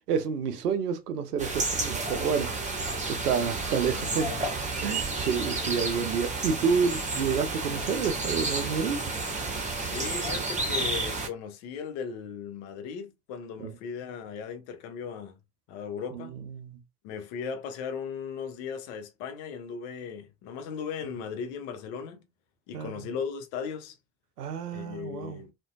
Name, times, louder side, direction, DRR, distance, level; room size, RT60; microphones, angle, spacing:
voice 1, 0.1-2.5 3.1-4.3 4.8-9.0 13.6-13.7 16.1-16.8 22.7-23.0 24.4-25.4, right 6 dB, 80° right, 0.5 m, -29 dB
sound 1, 1.4-11.3, right 3 dB, 15° right, 0.8 m, -31 dB
voice 2, 3.9-4.5 5.4-6.1 9.8-15.3 15.7-16.3 17.0-22.3 22.7-24.0 24.7-25.5, left 6 dB, 60° left, 0.8 m, -37 dB
2.5 x 2.1 x 2.3 m
figure-of-eight pair, 55°, 46 cm